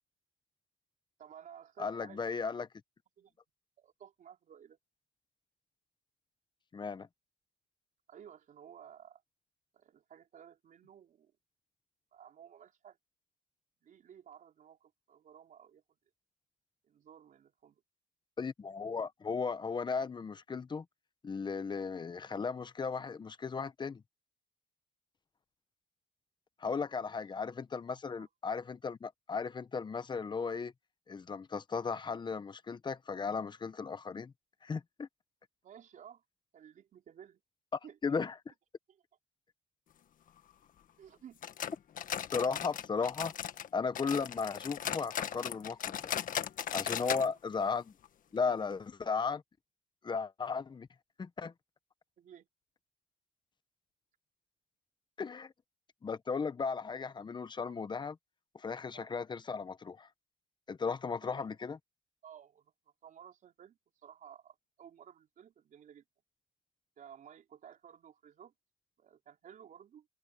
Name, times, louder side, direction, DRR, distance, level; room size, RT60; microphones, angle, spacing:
voice 1, 1.2-2.4 3.2-3.4 3.8-4.8 8.1-9.2 9.7-11.3 12.1-13.0 13.8-15.8 16.8-17.8 28.2-28.3 35.6-36.2 36.5-37.4 37.8-38.2 38.9-39.0 41.0-41.4 47.0-47.3 52.2-52.5 57.7-57.8 58.9-59.1 61.2-61.5 62.2-62.7 63.0-66.0 67.0-68.5 69.0-70.1, right 9 dB, 50° right, 4.6 m, -55 dB
voice 2, 1.8-2.7 6.7-7.1 18.4-20.8 21.2-24.0 26.6-30.7 31.1-34.3 34.6-35.1 37.7-38.3 42.3-43.3 43.7-46.1 46.7-47.9 48.3-49.4 50.0-50.9 51.2-51.5 55.2-55.5 56.0-58.1 58.5-60.1 60.7-61.8, left 5 dB, 25° left, 1.1 m, -36 dB
sound 1, 41.4-43.7 43.9-47.3 47.5-47.6 48.0-48.1 48.7-48.8, left 9 dB, 55° left, 1.8 m, -37 dB
cardioid pair, 110°, 17 cm